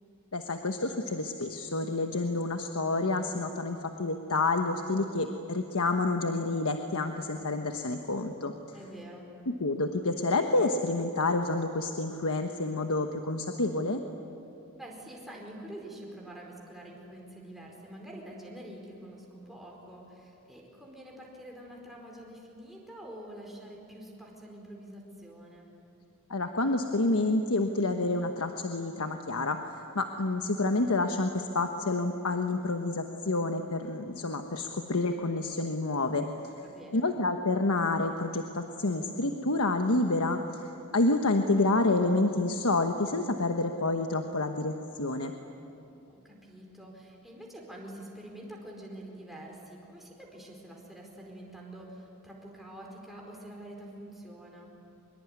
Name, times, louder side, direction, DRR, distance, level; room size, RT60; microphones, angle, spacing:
voice 1, 0.3-8.5 9.5-14.0 26.3-36.3 36.9-45.3, left 2 dB, 80° left, 5 dB, 1.2 m, -28 dB
voice 2, 8.7-9.3 14.8-25.7 36.6-37.0 46.1-54.7, right 1 dB, ahead, -2 dB, 4.7 m, -46 dB
24.5 x 22.5 x 9.7 m, 2.8 s
head